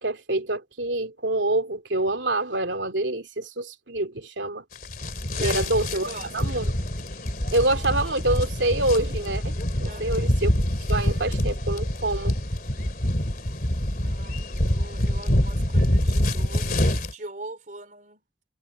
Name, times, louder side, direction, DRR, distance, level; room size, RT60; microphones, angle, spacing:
voice 1, 0.0-4.6 5.4-6.6 7.5-9.5 9.8-10.5 10.9-12.4, right 2 dB, 85° right, 2.9 m, -26 dB
sound 1, 4.7-17.1, left 1 dB, 50° left, 3.1 m, -25 dB
voice 2, 6.0-6.7 9.8-10.3 11.2-11.3 13.9-18.2, right 2 dB, 45° right, 4.2 m, -42 dB
head